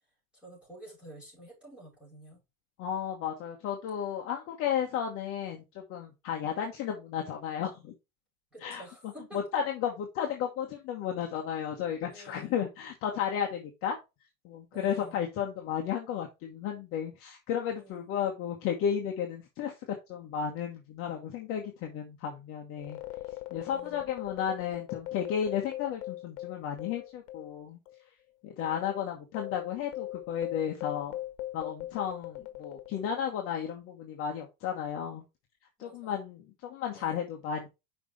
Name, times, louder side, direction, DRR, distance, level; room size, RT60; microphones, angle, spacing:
voice 1, 0.4-2.4 8.5-9.4 12.0-12.7 14.7-15.2 17.7-18.1 23.5-24.0 35.8-36.2 36.9-37.2, right 1 dB, ahead, 5.0 m, -50 dB
voice 2, 2.8-7.9 8.6-14.0 14.4-19.7 20.1-23.0 23.5-27.8 28.4-31.2 31.5-35.2 35.8-37.7, left 8 dB, 30° left, 1.3 m, -33 dB
sound 1, 22.8-27.6 27.9-28.0 28.6-33.4, left 15 dB, 50° left, 1.6 m, -40 dB
5.9 x 5.3 x 4.2 m
supercardioid pair, 165°, 44 cm